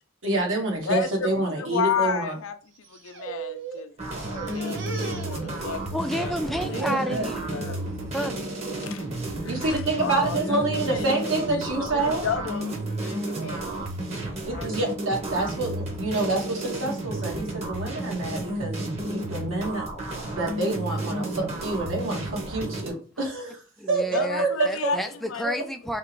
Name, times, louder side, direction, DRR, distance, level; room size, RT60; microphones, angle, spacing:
voice 1, 0.2-2.3 9.3-12.2 14.3-19.9 20.3-23.6 23.9-24.9 25.4-25.5, right 2 dB, 75° right, 1.4 m, -27 dB
voice 2, 0.9-2.5 2.9-3.9 4.5-6.8 7.2-7.8 8.8-9.0 9.4-13.7 14.3-14.8 24.1-25.4, left 6 dB, 80° left, 0.5 m, -32 dB
sound 1, 2.8-3.8 4.1-6.0 6.3-7.4 7.9-8.3 8.6-8.8 9.6-10.0 10.5-10.9 11.8-14.0, right 3 dB, 60° right, 0.8 m, -37 dB
sound 2, 4.0-22.9, right 1 dB, 30° right, 0.9 m, -32 dB
voice 3, 5.9-7.7 8.1-8.6 23.2-23.3 23.8-26.0, equal, ahead, 0.4 m, -31 dB
3.5 x 3.0 x 4.5 m
head